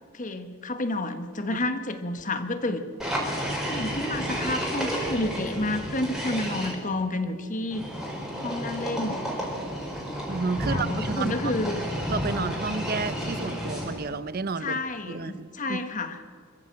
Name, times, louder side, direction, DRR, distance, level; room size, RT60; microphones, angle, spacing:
voice 1, 0.1-2.9 3.7-7.8 8.4-9.2 10.6-11.8 14.6-16.2, left 2 dB, 35° left, 8 dB, 1.3 m, -30 dB
sound 1, 3.0-6.7 7.7-14.1, equal, ahead, 4.3 m, -31 dB
voice 2, 10.3-11.4 12.1-14.8 15.1-15.8, right 4 dB, 45° right, 15 dB, 0.7 m, -31 dB
25.5 x 14.0 x 7.7 m, 2.1 s
head